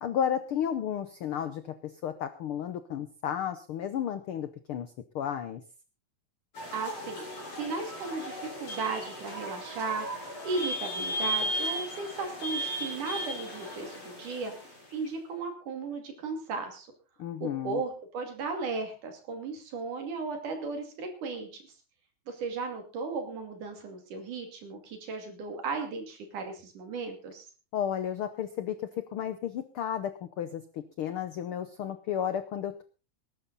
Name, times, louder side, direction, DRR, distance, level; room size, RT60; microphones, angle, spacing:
voice 1, 0.0-5.6 17.2-17.8 27.7-32.8, left 9 dB, 80° left, 11 dB, 1.2 m, -33 dB
sound 1, 6.5-15.1, equal, 50° left, 6.6 m, -36 dB
voice 2, 6.7-7.3 7.5-10.1 10.4-14.5 14.9-16.9 17.4-21.6 22.3-27.5, right 4 dB, 75° right, 5 dB, 4.0 m, -36 dB
20.0 x 11.5 x 4.0 m, 0.35 s
omnidirectional pair, 3.6 m